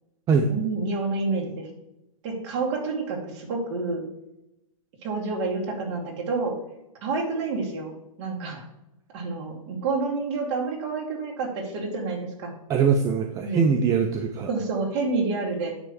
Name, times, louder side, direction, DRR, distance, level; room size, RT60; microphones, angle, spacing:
voice 1, 0.5-1.7 2.2-4.1 5.0-6.5 7.0-7.9 8.2-8.6 9.1-12.5 13.4-13.7 14.5-15.7, right 3 dB, 35° right, -1 dB, 2.4 m, -28 dB
voice 2, 12.7-14.5, right 5 dB, 20° right, 5 dB, 0.5 m, -22 dB
9.7 x 3.3 x 7.0 m, 0.90 s
hypercardioid pair, 145°, 18 cm